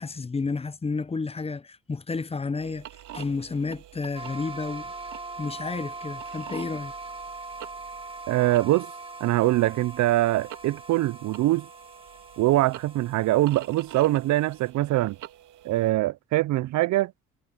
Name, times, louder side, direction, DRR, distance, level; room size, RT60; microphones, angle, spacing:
voice 1, 0.0-2.9 3.1-4.9 5.4-6.9, left 4 dB, 20° left, 0.6 m, -31 dB
sound 1, 2.6-15.9, right 12 dB, 85° right, 1.8 m, -47 dB
sound 2, 4.1-14.7, right 3 dB, 20° right, 1.6 m, -41 dB
voice 2, 8.3-8.9 9.2-11.7 12.4-15.2 15.6-17.1, right 16 dB, 70° right, 0.4 m, -23 dB
cardioid pair, 90°, 30 cm